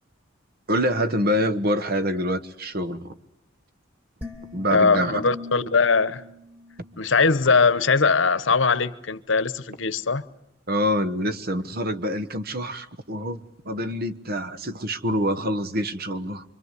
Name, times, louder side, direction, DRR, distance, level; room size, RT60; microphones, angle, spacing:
voice 1, 0.7-3.1 4.5-5.2 10.7-16.4, equal, 50° right, 1.2 m, -26 dB
sound 1, 4.2-7.5, left 2 dB, 10° right, 2.6 m, -42 dB
voice 2, 4.7-6.2 7.0-10.2, left 4 dB, 70° left, 1.0 m, -21 dB
26.0 x 25.0 x 8.3 m
head